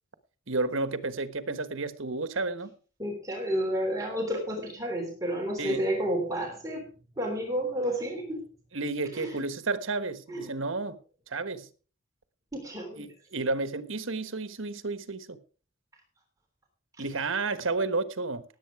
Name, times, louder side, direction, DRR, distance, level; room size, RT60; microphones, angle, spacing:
voice 1, 0.5-2.8 5.6-5.8 8.7-11.0 11.3-11.7 13.0-15.4 17.0-18.4, right 3 dB, 70° right, 1.3 m, -31 dB
voice 2, 3.0-6.9 7.2-8.5 9.1-9.4 10.3-10.5 12.5-13.1, equal, 15° right, 3.3 m, -31 dB
17.5 x 8.4 x 4.7 m
head